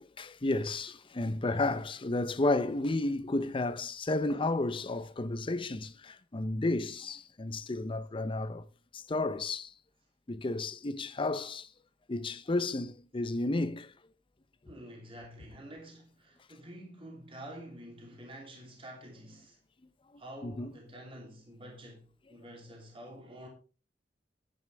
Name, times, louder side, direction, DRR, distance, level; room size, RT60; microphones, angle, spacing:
voice 1, 0.0-8.6 8.9-9.7 10.3-11.7 12.1-13.9 20.4-20.7, left 2 dB, 30° left, 0.6 m, -32 dB
voice 2, 14.7-19.6 20.2-23.5, right 1 dB, 30° right, 2.9 m, -48 dB
10.5 x 9.6 x 3.4 m
head